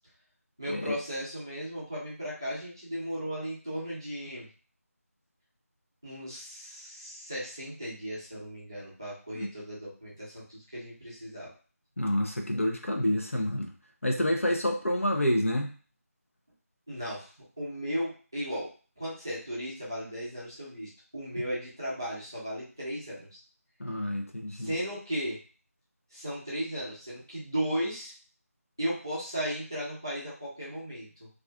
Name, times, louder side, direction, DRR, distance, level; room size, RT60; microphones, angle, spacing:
voice 1, 0.6-4.5 6.0-11.5 16.9-17.3 17.6-18.7 19.0-23.4 24.5-25.4 26.1-28.1 28.8-31.3, equal, 15° right, -9 dB, 0.6 m, -36 dB
voice 2, 12.0-13.7 14.0-15.7 23.8-24.7, left 1 dB, 60° left, 2 dB, 0.6 m, -28 dB
2.4 x 2.4 x 3.3 m, 0.38 s
figure-of-eight pair, 180°, 8 cm